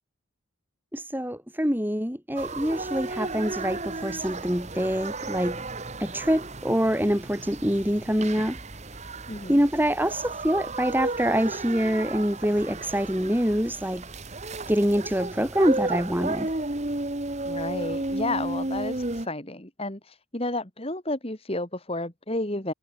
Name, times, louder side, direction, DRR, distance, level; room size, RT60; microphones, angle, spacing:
voice 1, 0.9-5.6 6.0-8.6 9.5-14.0 14.7-16.5, equal, 10° right, 2.9 m, -25 dB
sound 1, 2.4-19.3, right 2 dB, 30° right, 1.6 m, -33 dB
voice 2, 9.3-9.6 17.4-19.0 19.2-22.7, left 2 dB, 25° left, 2.6 m, -31 dB
head